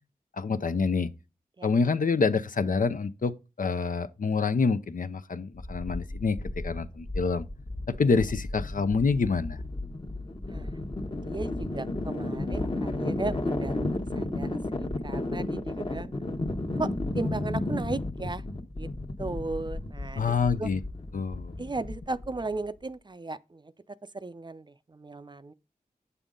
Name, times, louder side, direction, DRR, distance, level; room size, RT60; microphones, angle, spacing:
voice 1, 0.4-1.1 1.6-3.3 3.6-7.4 7.9-9.6 20.2-20.8 21.1-21.5, left 4 dB, 70° left, 0.6 m, -27 dB
sound 1, 5.5-22.6, left 2 dB, 35° left, 1.0 m, -33 dB
voice 2, 10.5-10.8 11.2-13.8 14.1-16.1 16.8-16.9 17.1-18.4 18.7-18.9 19.2-20.7 21.6-25.5, right 3 dB, 30° right, 0.5 m, -36 dB
8.2 x 6.9 x 3.7 m
wide cardioid pair, 60°, 15 cm